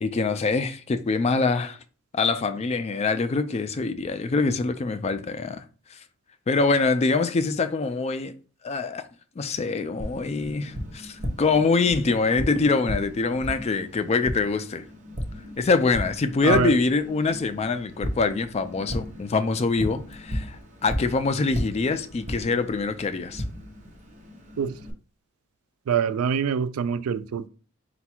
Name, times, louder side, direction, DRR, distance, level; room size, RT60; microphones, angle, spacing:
voice 1, 0.0-1.8 2.1-5.6 5.9-6.0 6.5-8.3 8.6-9.0 9.4-14.8 15.6-23.4, left 4 dB, 30° left, 0.3 m, -24 dB
Tap, 10.0-24.9, equal, 35° right, 0.8 m, -35 dB
voice 2, 16.4-16.7 24.6-24.8 25.9-27.5, right 7 dB, 80° right, 0.4 m, -25 dB
4.0 x 2.3 x 4.3 m
head